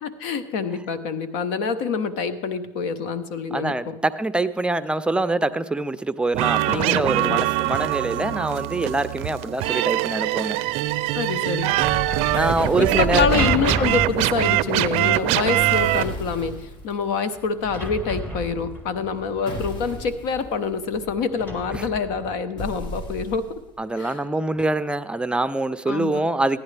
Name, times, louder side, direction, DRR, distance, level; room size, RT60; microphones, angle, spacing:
voice 1, 0.0-3.9 6.7-7.5 11.1-11.8 12.8-23.6 24.0-24.2 25.9-26.3, left 5 dB, 80° left, 1.0 m, -26 dB
voice 2, 3.5-10.6 12.3-13.3 21.7-21.8 23.8-26.6, right 2 dB, 10° right, 0.5 m, -24 dB
sound 1, 6.3-16.0, right 16 dB, 70° right, 0.4 m, -23 dB
sound 2, 10.6-22.3, equal, 15° left, 2.1 m, -33 dB
sound 3, 12.3-14.0 15.4-16.9 19.5-20.3 22.6-23.7, equal, 50° left, 1.8 m, -34 dB
15.5 x 10.0 x 3.3 m
supercardioid pair, 95°, 10 cm